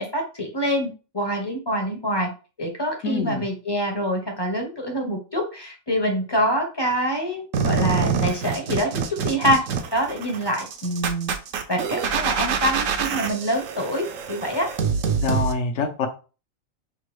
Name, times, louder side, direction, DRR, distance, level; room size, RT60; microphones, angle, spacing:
voice 1, 0.0-2.3 2.6-8.9 9.2-9.6 9.9-11.3 11.7-14.7, equal, 25° left, 2 dB, 0.7 m, -25 dB
voice 2, 3.0-3.4 15.2-16.1, left 4 dB, 70° left, 4 dB, 1.1 m, -25 dB
sound 1, 7.5-15.5, right 6 dB, 75° right, 1.0 m, -26 dB
5.9 x 2.3 x 3.1 m, 0.34 s
omnidirectional pair, 1.4 m